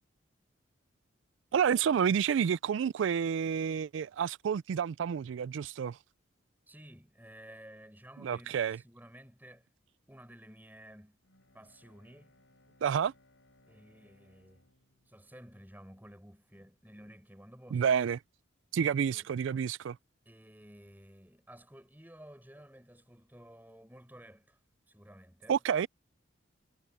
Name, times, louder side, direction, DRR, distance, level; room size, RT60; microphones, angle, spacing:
voice 1, 1.5-6.0 8.2-8.8 12.8-13.1 17.7-18.2 18.7-20.0 25.5-25.9, right 7 dB, 70° right, 0.3 m, -29 dB
voice 2, 6.7-9.7 10.1-11.2 11.5-12.3 13.7-14.7 15.0-17.9 19.1-19.3 20.2-24.6 24.9-25.6, equal, 10° right, 6.7 m, -53 dB
Bowed string instrument, 11.2-16.3, left 1 dB, 80° left, 5.3 m, -67 dB
head